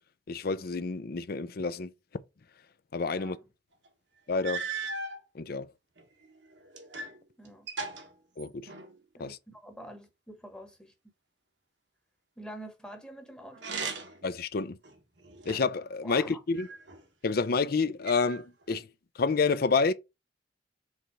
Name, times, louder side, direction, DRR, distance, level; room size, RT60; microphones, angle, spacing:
voice 1, 0.3-1.9 2.9-3.4 4.3-4.7 5.3-5.7 8.4-8.7 9.2-9.4 14.2-14.8 15.5-16.7 17.2-18.9 19.2-19.9, left 4 dB, 55° left, 0.5 m, -29 dB
voice 2, 3.1-3.4 7.4-7.7 9.2-10.9 12.4-13.7 16.0-16.4, right 1 dB, 5° left, 1.1 m, -46 dB
sound 1, 3.9-4.0 4.4-5.2 6.0-7.2 7.5-9.0 13.5-14.3 14.8-15.8 16.6-17.4 18.1-18.8, right 4 dB, 70° right, 1.2 m, -38 dB
4.8 x 3.8 x 5.5 m
head